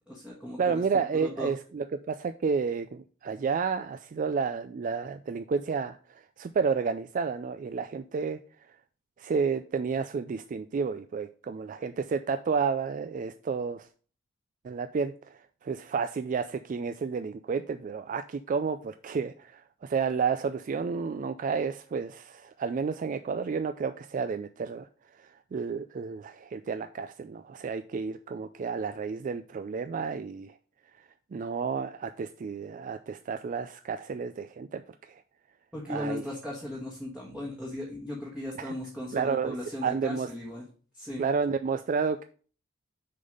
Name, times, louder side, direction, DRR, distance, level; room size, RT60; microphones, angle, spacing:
voice 1, 0.1-0.6 1.1-1.5 35.7-40.6 40.9-41.2, left 1 dB, 5° right, -5 dB, 1.3 m, -37 dB
voice 2, 0.6-8.8 9.2-13.9 14.6-30.5 30.9-35.2 35.9-36.2 38.6-38.7 39.1-39.6 39.8-40.3 41.2-42.2, right 5 dB, 40° right, 10 dB, 0.3 m, -31 dB
6.5 x 4.0 x 5.2 m, 0.41 s
head